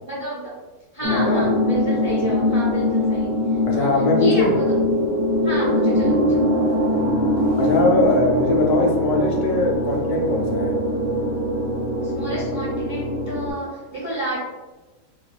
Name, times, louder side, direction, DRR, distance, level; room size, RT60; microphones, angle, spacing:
voice 1, 0.0-0.5 0.9-3.3 3.7-4.8 5.4-6.4 12.0-14.4, right 1 dB, 35° right, -8 dB, 0.6 m, -30 dB
sound 1, 1.0-13.5, equal, 65° right, 1.0 m, -22 dB
voice 2, 1.1-1.5 2.0-2.2 3.7-4.6 7.6-10.7, left 3 dB, 75° left, -1 dB, 1.1 m, -21 dB
2.8 x 2.2 x 2.3 m, 1.2 s
omnidirectional pair, 1.7 m